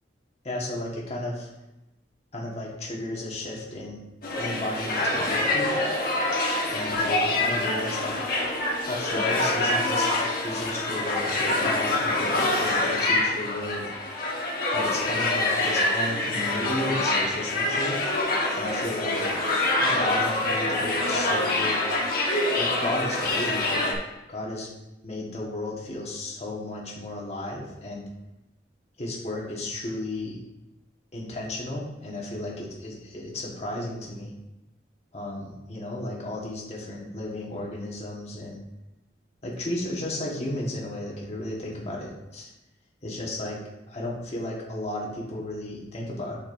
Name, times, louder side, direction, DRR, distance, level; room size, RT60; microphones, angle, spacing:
voice 1, 0.4-1.5 2.3-4.0 4.4-5.8 6.6-8.2 8.9-10.2 10.4-13.9 14.7-18.0 18.5-19.2 19.8-21.8 22.6-23.9 24.3-24.7 25.0-28.0 29.0-30.4 31.1-34.3 35.1-38.6 39.4-42.5 43.0-43.6 43.9-46.4, left 1 dB, 40° left, -3 dB, 1.5 m, -33 dB
sound 1, 4.2-23.9, left 2 dB, 55° left, 1.3 m, -25 dB
7.9 x 6.5 x 2.6 m, 0.94 s
head